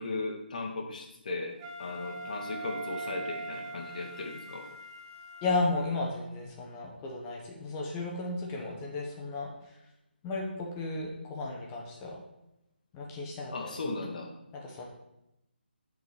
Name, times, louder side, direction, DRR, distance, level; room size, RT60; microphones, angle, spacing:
voice 1, 0.0-4.7 13.5-14.3, left 3 dB, 45° left, 2 dB, 1.3 m, -37 dB
Wind instrument woodwind instrument, 1.6-5.9, right 2 dB, 20° right, 0.5 m, -41 dB
voice 2, 5.4-9.5 10.2-12.2 12.9-13.7 14.6-14.9, left 3 dB, 15° left, -1 dB, 1.1 m, -34 dB
7.9 x 3.9 x 4.9 m, 0.88 s
figure-of-eight pair, 150°, 6 cm